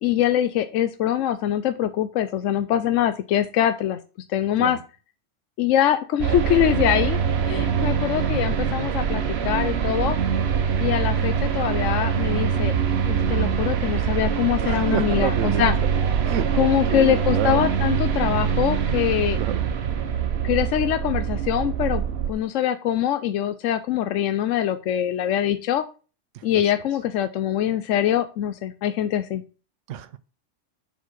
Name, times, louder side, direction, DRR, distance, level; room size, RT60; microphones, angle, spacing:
voice 1, 0.0-4.0 4.3-4.8 5.6-7.2 7.4-10.2 10.8-12.8 13.1-15.7 16.6-19.4 20.4-25.8 26.4-29.4, left 11 dB, 80° left, 1.0 m, -23 dB
sound 1, 6.2-22.3, right 7 dB, 60° right, 1.1 m, -24 dB
voice 2, 14.6-15.9 16.2-17.6 19.3-19.7 26.3-26.6 29.9-30.2, right 10 dB, 80° right, 0.9 m, -29 dB
6.9 x 4.4 x 6.1 m
omnidirectional pair, 1.3 m